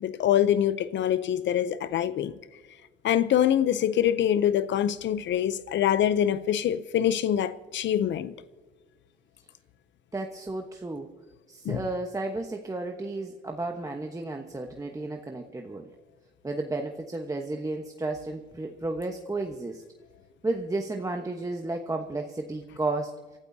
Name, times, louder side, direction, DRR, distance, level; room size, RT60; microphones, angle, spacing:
voice 1, 0.0-2.3 3.0-8.3 11.7-11.8, left 10 dB, 65° left, 0.6 m, -24 dB
voice 2, 10.1-11.1 11.5-15.9 16.4-19.8 20.4-23.2, right 2 dB, 15° right, 1.1 m, -33 dB
29.0 x 13.0 x 2.7 m
cardioid pair, 90°, 20 cm